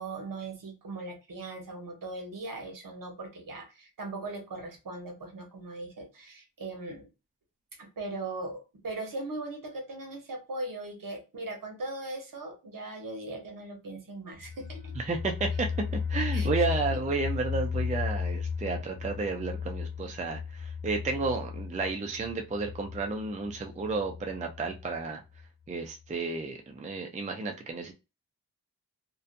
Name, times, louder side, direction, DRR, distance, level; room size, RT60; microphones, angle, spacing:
voice 1, 0.0-7.1 7.8-14.9 16.3-16.6, right 2 dB, 60° right, 3 dB, 1.0 m, -39 dB
sound 1, 14.3-25.0 25.4-25.5 25.8-25.9, left 6 dB, 80° left, 1.2 m, -35 dB
voice 2, 15.0-15.7 16.1-25.2 25.7-27.9, right 3 dB, 20° right, 3 dB, 0.4 m, -32 dB
2.6 x 2.2 x 2.5 m, 0.27 s
wide cardioid pair, 105°, 37 cm